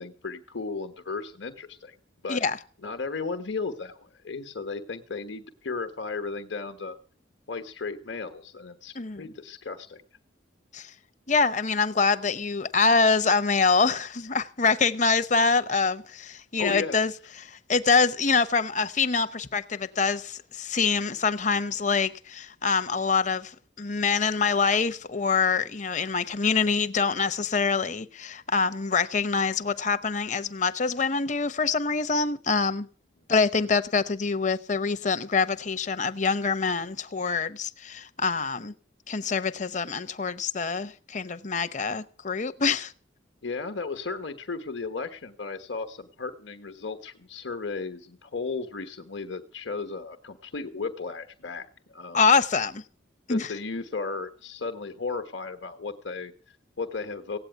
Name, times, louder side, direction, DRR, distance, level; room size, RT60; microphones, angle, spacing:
voice 1, 0.0-2.0 2.2-2.4 2.8-7.0 7.5-10.0 16.6-17.0 43.4-52.3 53.3-57.4, left 4 dB, 65° left, 1.2 m, -35 dB
voice 2, 8.9-9.3 10.7-10.9 11.3-17.1 17.4-32.9 33.3-38.7 39.1-42.9 52.1-52.8 53.3-53.5, left 4 dB, 35° left, 0.7 m, -25 dB
17.0 x 8.7 x 9.2 m
head